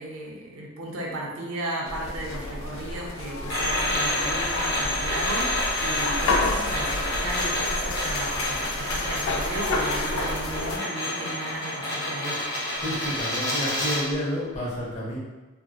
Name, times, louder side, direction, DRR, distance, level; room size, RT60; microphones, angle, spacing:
voice 1, 0.0-12.4, right 1 dB, 85° right, -1 dB, 0.5 m, -35 dB
sound 1, 1.9-10.8, left 2 dB, 80° left, 0.3 m, -30 dB
sound 2, 3.5-14.1, left 1 dB, 65° left, 0.7 m, -29 dB
voice 2, 12.8-15.2, equal, 30° left, -5 dB, 0.7 m, -30 dB
2.6 x 2.1 x 2.3 m, 1.2 s
head